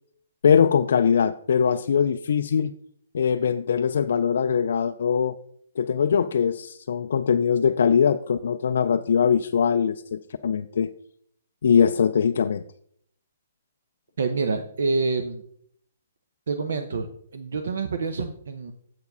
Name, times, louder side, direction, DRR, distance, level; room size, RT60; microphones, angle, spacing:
voice 1, 0.4-2.7 3.1-5.4 5.8-10.9 11.6-12.6, left 7 dB, 60° left, 7 dB, 0.3 m, -21 dB
voice 2, 14.2-15.4 16.5-17.1 17.3-18.7, right 4 dB, 70° right, 7 dB, 0.7 m, -27 dB
7.6 x 4.7 x 5.4 m, 0.65 s
hypercardioid pair, 175°, 0 cm